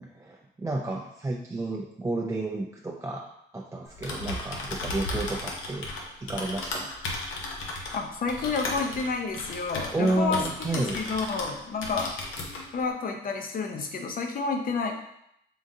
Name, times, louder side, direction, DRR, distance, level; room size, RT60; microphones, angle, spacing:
voice 1, 0.0-5.9 6.2-6.9 9.9-11.0, right 2 dB, 15° right, -1 dB, 0.4 m, -31 dB
Typing, 3.9-11.5 11.8-12.6, left 2 dB, 85° left, 0.8 m, -35 dB
voice 2, 7.9-12.1 12.7-14.9, left 4 dB, 45° left, 3 dB, 0.6 m, -30 dB
3.8 x 3.6 x 2.6 m, 0.77 s
cardioid pair, 90°, 20 cm